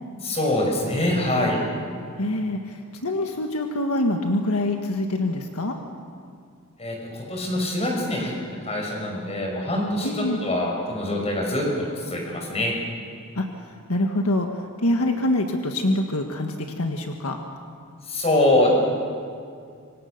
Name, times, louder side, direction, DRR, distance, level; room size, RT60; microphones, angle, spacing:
voice 1, 0.2-1.6 6.8-8.3 8.6-12.7 18.1-18.7, left 1 dB, 30° left, 0 dB, 5.9 m, -24 dB
voice 2, 2.2-2.6 3.0-5.7 10.0-10.4 13.4-13.5 13.9-14.5 14.8-17.4, left 1 dB, 75° left, 3 dB, 1.6 m, -24 dB
26.5 x 24.5 x 6.7 m, 2.3 s
head